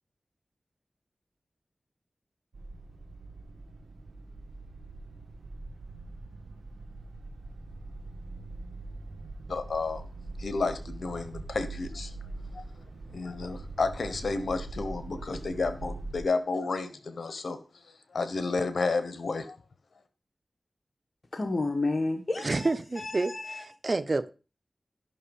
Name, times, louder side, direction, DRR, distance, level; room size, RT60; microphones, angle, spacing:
sound 1, 2.5-16.2, right 2 dB, 85° right, 1.7 m, -42 dB
voice 1, 9.5-10.0 10.4-12.1 12.5-12.6 13.1-17.6 18.1-19.6, left 3 dB, 80° left, 1.2 m, -31 dB
voice 2, 21.3-22.7 23.0-23.6, left 2 dB, 55° left, 1.2 m, -30 dB
voice 3, 22.4-24.3, right 3 dB, 50° right, 0.7 m, -29 dB
12.5 x 6.1 x 5.4 m
cardioid pair, 45°, 0 cm